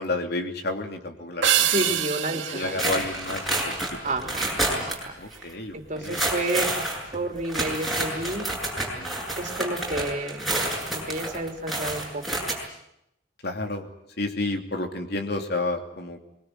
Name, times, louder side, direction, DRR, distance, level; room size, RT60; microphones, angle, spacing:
voice 1, 0.0-2.0 2.3-4.3 4.7-6.2 9.0-9.2 13.4-13.9 14.2-16.2, left 2 dB, 60° left, 4 dB, 3.1 m, -31 dB
sound 1, 1.4-4.1, right 10 dB, 90° right, 2.3 m, -26 dB
voice 2, 1.6-2.9 4.0-4.4 4.8-5.0 5.4-8.5 9.4-10.5 10.9-12.4, right 2 dB, 40° right, 3 dB, 3.4 m, -31 dB
sound 2, 2.8-5.1 5.3-5.4 6.0-12.5, right 1 dB, ahead, 7.5 m, -29 dB
24.0 x 22.5 x 9.5 m, 0.79 s
head